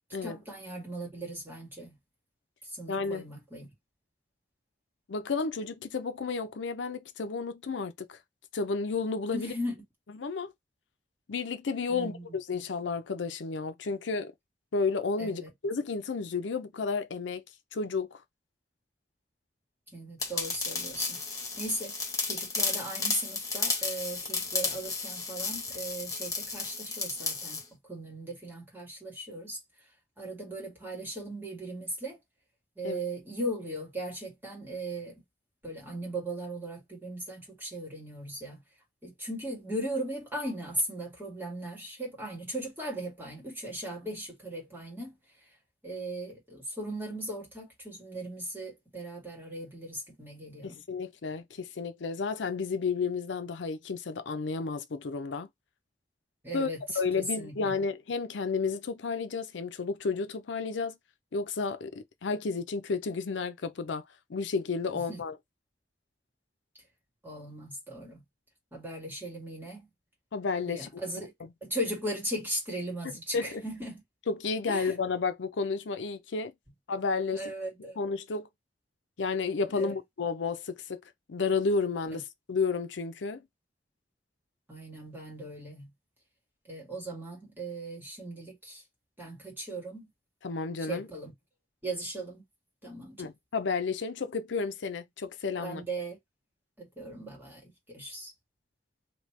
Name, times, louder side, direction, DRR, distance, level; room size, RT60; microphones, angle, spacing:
voice 1, 0.2-2.0 2.8-3.7 9.3-9.8 11.9-12.4 15.2-15.5 19.9-21.2 21.5-21.9 22.2-27.6 27.9-29.6 30.2-32.2 32.8-35.1 35.6-38.6 39.0-45.2 45.8-50.8 56.4-56.8 57.2-57.8 64.9-65.2 67.2-68.2 68.7-69.9 70.7-71.3 71.6-74.0 74.7-74.9 77.3-78.0 79.8-79.9 82.1-82.2 84.7-85.9 86.7-88.8 89.2-90.1 90.9-91.3 91.8-92.4 92.8-93.2 95.6-96.2 96.8-98.3, right 1 dB, 10° right, 1.8 m, -38 dB
voice 2, 2.9-3.2 5.1-8.2 8.5-9.5 10.1-10.5 11.3-14.3 14.7-17.4 17.7-18.2 32.8-33.0 50.6-55.5 56.5-56.7 56.9-60.9 61.3-64.0 64.3-65.4 70.3-70.9 71.4-71.5 73.3-73.6 74.3-76.5 76.9-77.5 78.0-78.5 79.2-81.0 81.3-83.4 90.4-91.1 93.2-95.8, left 4 dB, 90° left, 0.5 m, -32 dB
sound 1, 20.2-27.6, left 4 dB, 20° left, 0.8 m, -33 dB
3.0 x 2.8 x 3.2 m
head